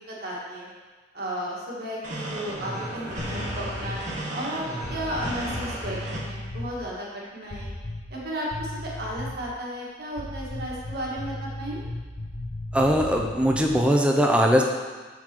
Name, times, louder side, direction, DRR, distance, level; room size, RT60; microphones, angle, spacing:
voice 1, 0.1-0.7 1.1-7.1 7.3-7.7 8.1-11.8, equal, 60° right, -5 dB, 2.0 m, -34 dB
sound 1, 2.0-6.2, right 1 dB, 45° right, 1.4 m, -34 dB
sound 2, 3.2-4.1 4.8-6.7 7.5-8.2 8.5-9.5 10.1-13.8, left 1 dB, 60° left, 0.9 m, -36 dB
voice 2, 12.7-14.6, equal, 5° right, 1 dB, 0.6 m, -20 dB
6.6 x 6.0 x 4.5 m, 1.4 s
head